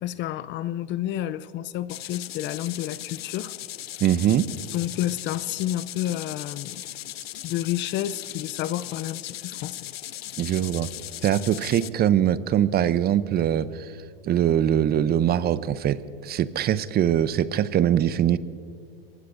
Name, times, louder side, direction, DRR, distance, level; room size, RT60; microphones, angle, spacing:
voice 1, 0.0-3.5 4.7-6.8 7.4-9.9, left 13 dB, 40° left, 17 dB, 0.5 m, -30 dB
sound 1, 1.9-11.9, left 13 dB, 90° left, 0.6 m, -38 dB
voice 2, 4.0-4.5 10.4-10.9 11.2-13.9 14.2-18.4, right 10 dB, 35° right, 16 dB, 0.6 m, -22 dB
23.5 x 20.0 x 2.6 m, 2.1 s
hypercardioid pair, 95°, 29 cm